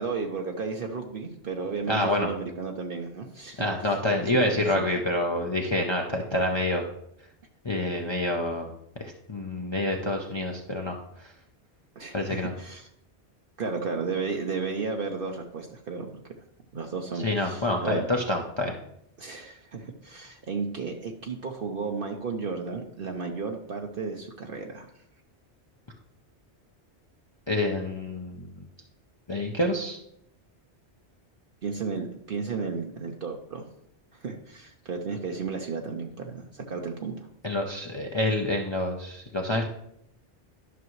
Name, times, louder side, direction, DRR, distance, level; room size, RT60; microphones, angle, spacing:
voice 1, 0.0-4.0 4.3-4.8 12.0-12.9 13.6-16.2 16.7-18.1 19.2-24.9 31.6-33.6 34.2-37.3, right 4 dB, 55° right, 3 dB, 0.9 m, -33 dB
voice 2, 1.9-2.3 3.6-6.8 7.6-8.7 9.0-11.0 12.1-12.5 17.2-18.7 27.5-28.4 29.3-30.0 37.4-39.7, left 1 dB, 30° left, 1 dB, 0.6 m, -27 dB
11.5 x 6.0 x 3.1 m, 0.75 s
omnidirectional pair, 1.1 m